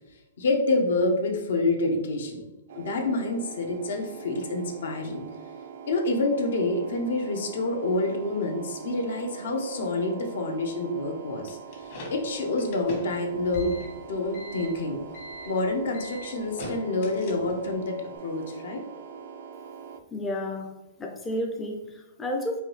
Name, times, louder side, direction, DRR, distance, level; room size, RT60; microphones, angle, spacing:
voice 1, 0.4-2.4 2.8-5.2 5.9-13.7 14.1-15.0 15.4-18.9, left 2 dB, 75° left, 2 dB, 0.9 m, -27 dB
sound 1, 2.7-20.0, right 7 dB, 60° right, 0.4 m, -43 dB
sound 2, 11.5-17.7, left 1 dB, 50° left, 1.3 m, -40 dB
voice 2, 20.1-22.6, left 1 dB, 10° left, 1 dB, 0.4 m, -32 dB
4.7 x 2.6 x 3.2 m, 0.96 s
hypercardioid pair, 150°, 0 cm